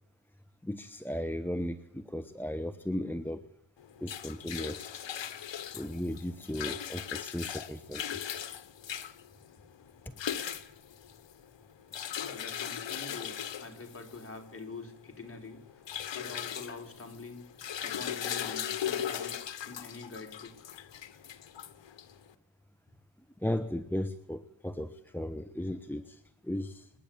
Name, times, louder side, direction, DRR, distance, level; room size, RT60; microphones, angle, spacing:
voice 1, 0.6-3.4 4.0-4.9 5.7-8.4 23.4-26.9, left 1 dB, 5° left, 12 dB, 1.0 m, -36 dB
sound 1, 3.8-22.3, left 9 dB, 75° left, 1.4 m, -39 dB
voice 2, 12.2-15.6 16.1-20.7, left 3 dB, 30° left, 2 dB, 4.8 m, -45 dB
28.5 x 10.0 x 9.0 m, 0.69 s
cardioid pair, 70°, 44 cm